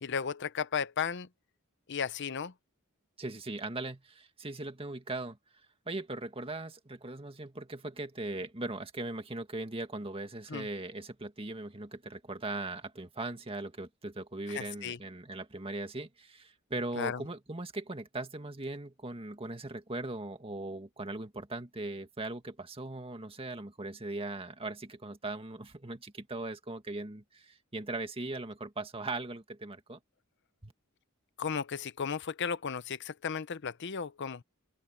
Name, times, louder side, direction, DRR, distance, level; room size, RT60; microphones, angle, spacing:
voice 1, 0.0-1.3 1.9-2.5 10.5-10.7 14.5-15.0 17.0-17.2 31.4-34.4, left 6 dB, 55° left, 0.7 m, -34 dB
voice 2, 3.2-5.4 5.9-30.0 30.6-30.7, right 2 dB, 25° right, 2.0 m, -39 dB
open air
head